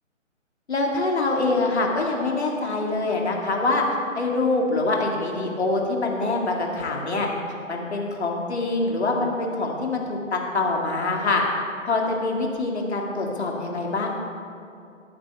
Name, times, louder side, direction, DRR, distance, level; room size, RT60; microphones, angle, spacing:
voice 1, 0.7-3.8 4.2-7.3 7.7-11.4 11.8-14.1, left 3 dB, 55° left, 0 dB, 2.5 m, -24 dB
22.0 x 8.5 x 3.6 m, 2.4 s
figure-of-eight pair, 150°, 39 cm